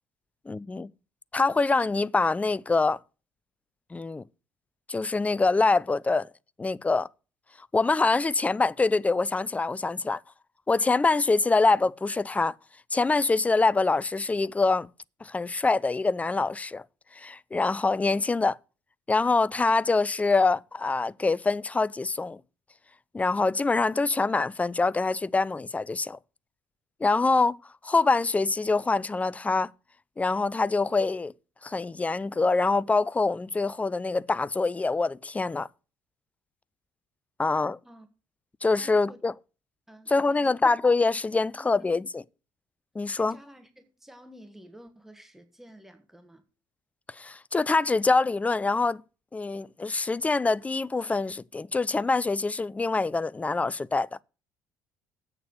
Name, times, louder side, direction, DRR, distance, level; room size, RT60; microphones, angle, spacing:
voice 1, 0.5-0.9 1.3-3.0 3.9-4.2 4.9-6.3 6.6-7.1 7.7-10.2 10.7-12.5 12.9-14.9 15.2-16.8 17.1-18.6 19.1-22.4 23.1-26.2 27.0-29.7 30.2-31.3 31.6-35.7 37.4-37.8 38.6-39.3 40.1-42.2 42.9-43.4 47.1-49.0 49.3-54.1, left 3 dB, 15° left, 0.4 m, -25 dB
voice 2, 38.8-39.2 39.9-40.6 41.5-41.8 43.1-46.4, right 1 dB, 5° right, 1.6 m, -51 dB
8.4 x 6.7 x 8.1 m
figure-of-eight pair, 55°, 10 cm